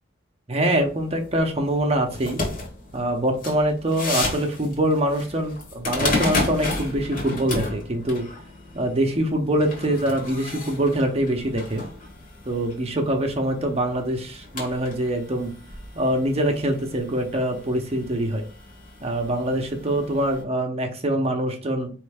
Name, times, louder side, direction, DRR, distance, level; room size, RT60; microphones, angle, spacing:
voice 1, 0.5-2.4 2.9-8.3 8.7-11.8 12.4-15.5 15.9-18.4 19.0-21.9, right 1 dB, 30° right, 3 dB, 0.7 m, -24 dB
sound 1, 0.8-20.4, left 2 dB, 45° left, 1.3 m, -33 dB
4.3 x 3.1 x 3.4 m, 0.40 s
head